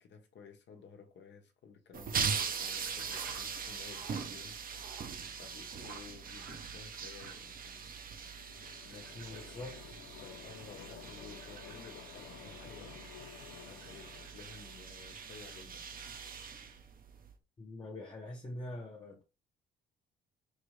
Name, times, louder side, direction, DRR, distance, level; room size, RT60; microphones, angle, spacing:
voice 1, 0.0-4.9 5.4-7.9 8.8-9.8 10.2-13.0 13.7-16.2, left 5 dB, 65° left, 1.0 m, -54 dB
sound 1, 1.9-17.3, right 6 dB, 45° right, 0.7 m, -41 dB
sound 2, 2.1-15.2, right 6 dB, 80° right, 0.9 m, -57 dB
sound 3, 7.8-15.7, left 10 dB, 90° left, 0.4 m, -53 dB
voice 2, 9.2-10.0 17.6-19.2, left 1 dB, 25° left, 0.8 m, -44 dB
4.8 x 2.5 x 3.2 m
cardioid pair, 90°, 20 cm